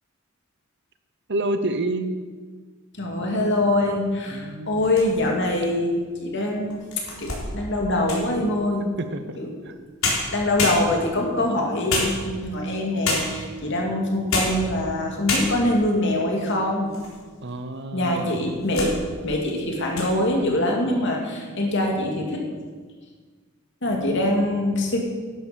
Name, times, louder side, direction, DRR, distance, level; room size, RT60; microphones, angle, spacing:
voice 1, 1.3-2.1 4.3-4.8 9.1-9.4 9.7-9.8 17.4-18.6, right 2 dB, 55° right, 9 dB, 0.9 m, -28 dB
voice 2, 3.0-6.8 7.2-8.9 9.4-9.5 10.3-16.9 17.9-19.0 19.2-22.5 23.8-25.0, left 1 dB, 60° left, 0 dB, 2.5 m, -24 dB
sound 1, 4.7-5.5 6.1-6.2 6.7-8.4 9.7-9.8 10.0-11.2 11.9-12.6 13.0-13.5 14.1-14.7 14.9-15.0 15.3-15.8 16.4-17.2 17.5-17.6 18.3-19.0 19.3-19.5 19.8-20.1, left 2 dB, 90° left, 3.8 m, -28 dB
11.5 x 11.5 x 5.2 m, 1.5 s
head